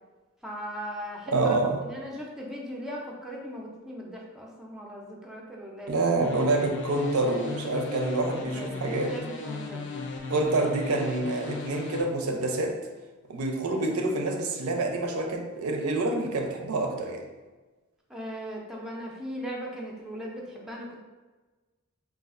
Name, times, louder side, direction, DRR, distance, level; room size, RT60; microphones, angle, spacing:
voice 1, 0.4-1.6 1.8-5.9 8.1-10.0 18.1-21.0, equal, ahead, -3 dB, 0.4 m, -38 dB
voice 2, 1.3-1.8 5.9-9.2 10.3-12.8 13.3-17.2, right 2 dB, 75° right, 3 dB, 0.5 m, -27 dB
sound 1, 6.2-12.0, left 4 dB, 60° left, 0.4 m, -37 dB
4.1 x 2.3 x 2.4 m, 1.3 s
head